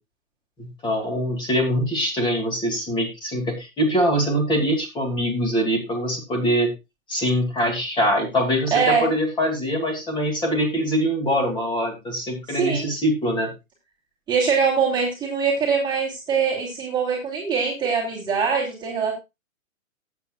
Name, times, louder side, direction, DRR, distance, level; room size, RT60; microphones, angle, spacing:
voice 1, 0.6-6.7 7.1-13.5, equal, 10° left, 3 dB, 2.7 m, -23 dB
voice 2, 8.7-9.1 12.5-12.9 14.3-19.1, right 5 dB, 10° right, -4 dB, 2.8 m, -23 dB
17.0 x 8.5 x 2.4 m, 0.23 s
hypercardioid pair, 150°, 40 cm